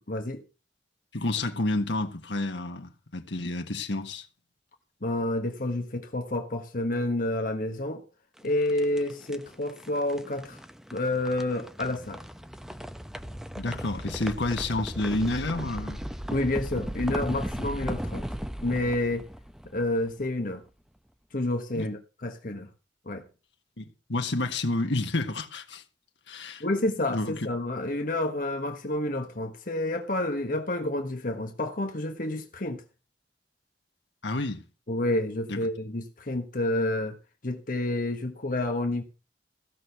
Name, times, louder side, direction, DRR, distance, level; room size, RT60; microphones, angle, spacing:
voice 1, 0.1-0.4 5.0-8.0 8.4-10.6 10.9-12.2 16.3-18.3 18.6-19.2 19.7-20.6 21.3-22.7 23.0-23.2 26.6-32.8 34.9-37.2 37.4-39.0, left 1 dB, 50° left, 1.3 m, -29 dB
voice 2, 1.1-4.3 13.6-16.0 21.7-21.9 23.8-25.8 26.3-26.6 27.1-27.5 34.2-34.6 35.5-35.6, left 2 dB, 75° left, 1.5 m, -30 dB
sound 1, 8.4-20.5, equal, 5° right, 0.8 m, -37 dB
15.5 x 6.4 x 6.9 m
head